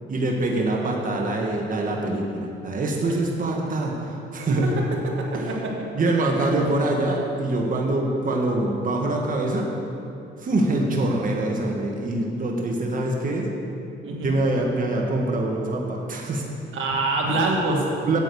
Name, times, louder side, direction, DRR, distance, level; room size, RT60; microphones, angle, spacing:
voice 1, 0.1-4.8 5.3-5.5 5.9-9.7 10.4-13.5 14.2-16.4 17.2-17.4 18.0-18.2, right 2 dB, 45° right, 0 dB, 1.6 m, -24 dB
voice 2, 4.8-5.7 14.0-14.4 16.7-17.9, right 2 dB, 80° right, 0 dB, 1.8 m, -25 dB
9.2 x 8.1 x 6.9 m, 2.8 s
cardioid pair, 90°, 20 cm